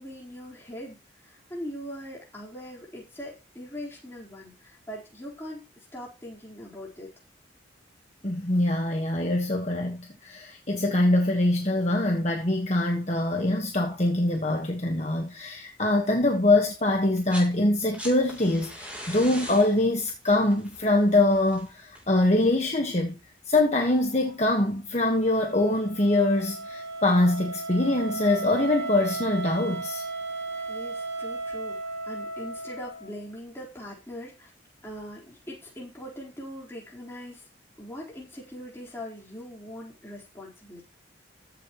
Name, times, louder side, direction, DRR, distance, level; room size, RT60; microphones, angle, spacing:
voice 1, 0.0-7.1 30.7-34.5 34.8-37.5 37.8-40.9, equal, 15° left, 4.4 m, -41 dB
voice 2, 8.2-23.2 23.4-30.0, left 2 dB, 35° left, 1.5 m, -24 dB
sound 1, 17.0-17.5 17.8-22.7 23.9-24.0, equal, 5° right, 3.7 m, -42 dB
Wind instrument woodwind instrument, 25.2-33.2, right 3 dB, 35° right, 3.0 m, -35 dB
15.0 x 7.9 x 3.1 m
head